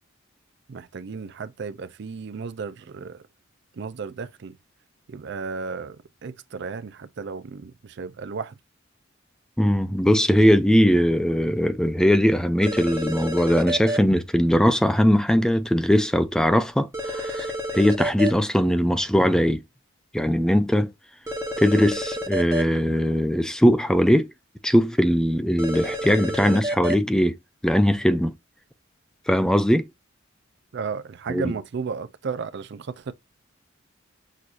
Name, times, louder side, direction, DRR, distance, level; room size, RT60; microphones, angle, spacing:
voice 1, 0.7-3.2 3.7-4.6 5.1-8.6 30.7-33.1, right 5 dB, 60° right, 0.4 m, -34 dB
voice 2, 9.6-17.5 17.7-19.6 20.1-20.9 21.6-24.3 24.6-27.3 27.6-28.3 29.3-29.9 31.3-31.5, equal, 5° left, 0.3 m, -20 dB
sound 1, 12.6-14.0 16.9-18.3 21.3-22.6 25.6-26.9, equal, 15° right, 1.0 m, -29 dB
6.2 x 2.7 x 2.5 m
head